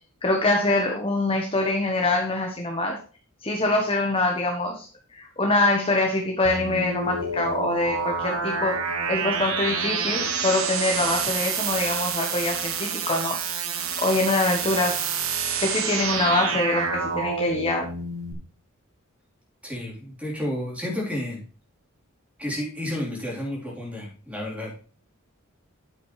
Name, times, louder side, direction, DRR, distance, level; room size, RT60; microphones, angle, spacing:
voice 1, 0.2-3.0 3.4-4.9 5.1-13.6 14.0-15.0 15.6-17.9, left 2 dB, 25° left, 2 dB, 1.2 m, -24 dB
sound 1, 6.4-18.3, right 5 dB, 80° right, 1.5 m, -28 dB
voice 2, 19.6-21.4 22.4-24.7, left 1 dB, 5° right, -3 dB, 3.6 m, -31 dB
9.2 x 8.2 x 3.2 m, 0.39 s
head